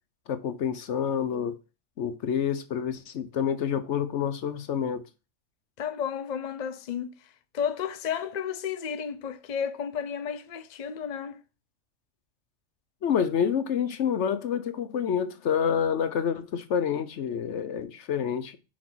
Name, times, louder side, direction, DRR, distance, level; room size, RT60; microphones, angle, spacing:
voice 1, 0.3-1.6 2.0-5.1 13.0-18.6, left 8 dB, 70° left, 1.0 m, -28 dB
voice 2, 5.8-11.4, left 7 dB, 40° left, 0.7 m, -32 dB
6.3 x 5.1 x 6.1 m
omnidirectional pair, 1.3 m